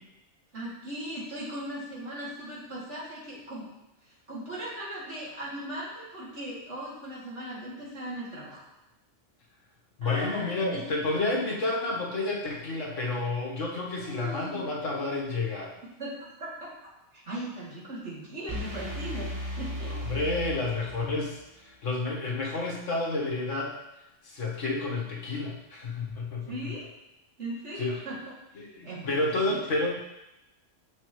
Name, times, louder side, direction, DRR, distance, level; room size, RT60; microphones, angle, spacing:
voice 1, 0.5-3.7 4.0-8.6 10.0-10.9 14.0-14.7 15.8-16.7 17.1-19.3 19.6-19.9 26.5-26.9 27.4-28.2 28.5-29.6, right 1 dB, 70° right, -8 dB, 3.0 m, -38 dB
voice 2, 10.0-15.7 19.9-23.8 24.2-26.5 27.8-28.0 28.6-30.0, left 2 dB, 80° left, -3 dB, 1.8 m, -30 dB
sound 1, 18.5-21.4, equal, 15° right, 1.2 m, -36 dB
7.8 x 6.4 x 3.2 m, 0.93 s
omnidirectional pair, 1.3 m